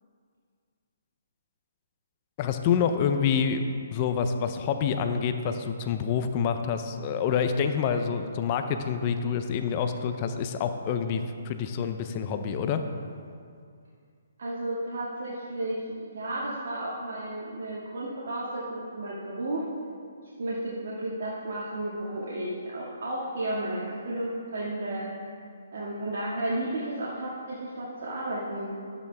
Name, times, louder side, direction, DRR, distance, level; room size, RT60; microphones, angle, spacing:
voice 1, 2.4-3.6 3.9-12.8, left 7 dB, 35° left, 7 dB, 0.7 m, -27 dB
voice 2, 14.4-19.6 20.4-25.3 25.7-28.7, right 1 dB, 65° right, -6 dB, 2.0 m, -33 dB
12.5 x 9.0 x 3.5 m, 2.3 s
hypercardioid pair, 150°, 0 cm